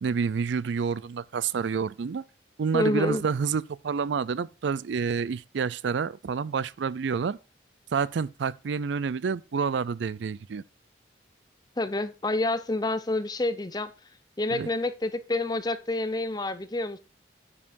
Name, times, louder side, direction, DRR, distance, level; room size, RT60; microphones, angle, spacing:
voice 1, 0.0-2.2 2.6-7.4 7.9-10.6 14.5-14.7, right 6 dB, 75° right, 0.4 m, -28 dB
voice 2, 2.7-3.2 11.8-13.9 14.4-17.0, left 2 dB, 20° left, 0.6 m, -28 dB
9.8 x 7.4 x 2.5 m
head